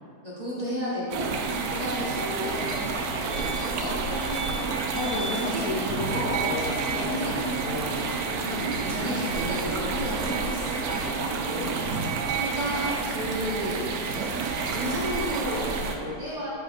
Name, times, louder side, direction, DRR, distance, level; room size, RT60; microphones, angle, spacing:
voice 1, 0.2-1.3 1.7-4.8 5.1-5.6 6.1-6.5 6.9-7.3 8.3-11.8 12.0-14.3 14.7-16.5, equal, 30° right, -8 dB, 1.0 m, -33 dB
sound 1, 1.1-16.0, right 4 dB, 70° right, 1.0 m, -29 dB
sound 2, 3.3-3.8 4.1-4.5 4.9-5.4 7.7-7.8 8.0-8.1, equal, 30° left, 0.4 m, -39 dB
voice 2, 4.9-8.1 11.5-12.3, left 3 dB, 65° left, -2 dB, 0.9 m, -34 dB
7.6 x 5.0 x 2.6 m, 2.6 s
omnidirectional pair, 1.8 m